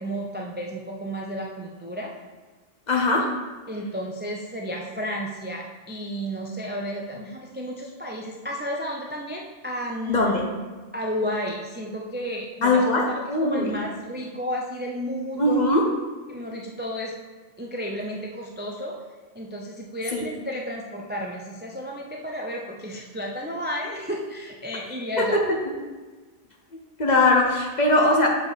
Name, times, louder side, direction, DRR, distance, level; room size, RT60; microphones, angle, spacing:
voice 1, 0.0-2.1 3.7-10.4 10.9-15.7 16.3-17.1 17.6-19.0 19.3-25.4, equal, 15° right, -1 dB, 0.4 m, -32 dB
voice 2, 2.9-3.3 10.1-10.4 12.6-13.0 13.3-13.7 15.4-15.8 20.1-20.3 25.2-25.3 27.0-28.3, left 2 dB, 40° left, 0 dB, 1.1 m, -20 dB
6.9 x 5.0 x 4.1 m, 1.3 s
omnidirectional pair, 1.2 m